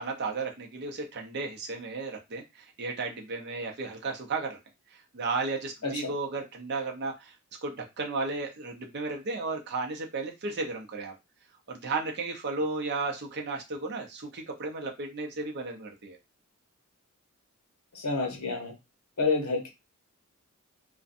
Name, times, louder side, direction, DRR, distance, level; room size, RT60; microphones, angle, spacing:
voice 1, 0.0-4.6 5.1-7.3 7.6-11.1 11.7-16.2, right 3 dB, 50° right, 1 dB, 0.6 m, -34 dB
voice 2, 17.9-18.7 19.2-19.7, left 4 dB, 80° left, 3 dB, 0.9 m, -29 dB
2.5 x 2.1 x 2.5 m, 0.23 s
head